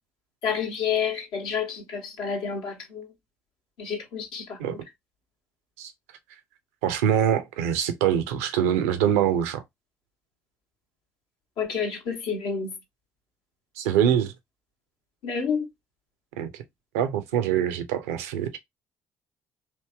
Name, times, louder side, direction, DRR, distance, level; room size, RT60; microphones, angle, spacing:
voice 1, 0.4-3.1 3.8-4.8 11.6-12.8 15.2-15.7, left 6 dB, 65° left, 0.9 m, -29 dB
voice 2, 6.8-9.6 13.8-14.3 16.4-16.5 16.9-18.6, right 9 dB, 75° right, 0.6 m, -24 dB
3.0 x 2.7 x 3.3 m
figure-of-eight pair, 45°, 8 cm